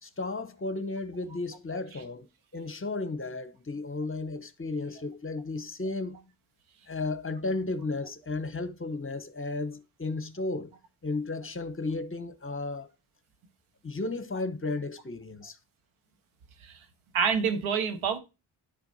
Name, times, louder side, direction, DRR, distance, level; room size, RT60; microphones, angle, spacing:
voice 1, 0.0-2.3 2.5-6.2 6.9-10.7 11.0-12.9 13.8-15.6, left 3 dB, 25° left, 1.1 m, -34 dB
voice 2, 1.7-2.0 16.6-16.8 17.1-18.2, right 6 dB, 75° right, 1.4 m, -28 dB
11.5 x 4.3 x 2.7 m
supercardioid pair, 50°, 48 cm